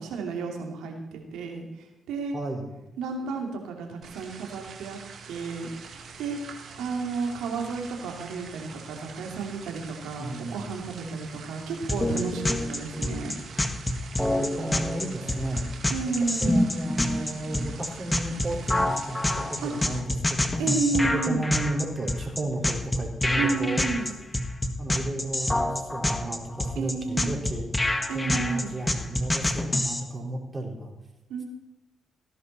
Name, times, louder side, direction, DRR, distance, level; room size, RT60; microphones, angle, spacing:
voice 1, 0.0-2.4 3.0-5.0 5.3-5.7 6.2-6.4 6.8-13.4 15.9-16.6 19.6-19.7 20.6-21.4 23.4-24.1 26.7-27.4 28.1-28.8 31.3-31.4, right 4 dB, 90° right, 2 dB, 2.8 m, -31 dB
voice 2, 2.3-2.7 10.2-10.7 14.2-15.7 16.0-20.6 21.0-23.8 24.8-27.7 28.1-30.9, right 2 dB, 30° right, 0 dB, 4.7 m, -33 dB
sound 1, 4.0-20.0, right 5 dB, 70° right, 2.2 m, -45 dB
sound 2, 11.9-30.0, left 1 dB, 15° left, 1.7 m, -26 dB
17.0 x 11.0 x 4.3 m, 0.97 s
supercardioid pair, 65°, 0 cm